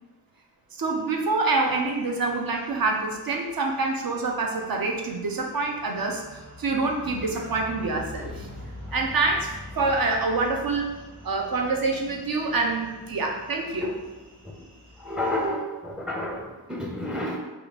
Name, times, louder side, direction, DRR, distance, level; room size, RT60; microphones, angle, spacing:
voice 1, 0.8-6.2 6.6-8.5 8.9-9.5 9.8-11.0 11.2-13.9, right 3 dB, 55° right, 1 dB, 0.7 m, -26 dB
sound 1, 0.9-15.5, left 2 dB, 25° right, 1.0 m, -45 dB
voice 2, 15.0-17.4, left 1 dB, ahead, 0 dB, 0.6 m, -31 dB
3.5 x 2.4 x 2.9 m, 1.1 s
cardioid pair, 60°, 43 cm